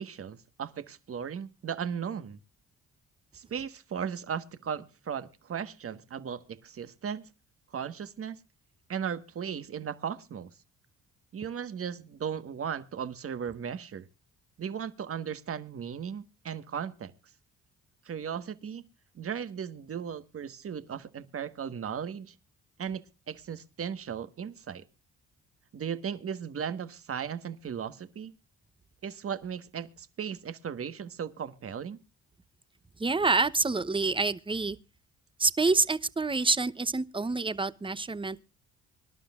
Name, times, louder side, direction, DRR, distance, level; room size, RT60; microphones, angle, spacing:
voice 1, 0.0-2.4 3.3-7.3 7.7-8.4 8.9-10.5 11.3-14.1 14.6-17.1 18.0-18.8 19.1-22.3 22.8-24.8 25.7-28.3 29.0-32.0, right 7 dB, 50° right, 1.4 m, -36 dB
voice 2, 33.0-34.8 35.4-38.4, right 3 dB, 15° right, 0.9 m, -27 dB
25.0 x 12.0 x 2.5 m
cardioid pair, 90°, 30 cm